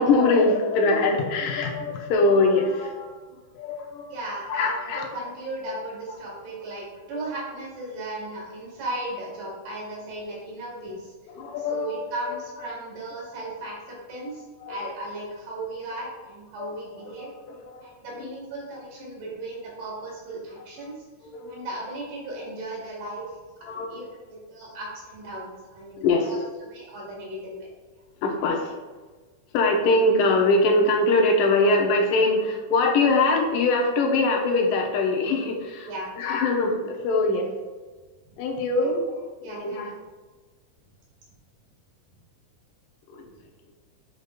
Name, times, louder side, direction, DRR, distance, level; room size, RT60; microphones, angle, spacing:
voice 1, 0.0-3.1 3.5-4.2 4.5-5.1 7.1-7.2 11.3-12.4 14.2-14.3 14.6-14.8 15.6-15.7 16.6-16.7 17.0-17.8 21.3-21.7 23.6-24.1 26.0-26.4 28.2-28.8 29.5-35.9 36.2-37.5 38.4-39.1 39.4-39.9 43.1-43.3, left 2 dB, 85° left, 1 dB, 2.4 m, -23 dB
voice 2, 4.1-11.1 11.7-17.3 17.8-20.9 21.5-23.3 23.6-24.2 24.5-27.7 35.9-36.1 38.8-38.9 39.4-39.9, right 1 dB, 85° right, -4 dB, 3.6 m, -36 dB
7.9 x 5.1 x 2.4 m, 1.3 s
omnidirectional pair, 3.7 m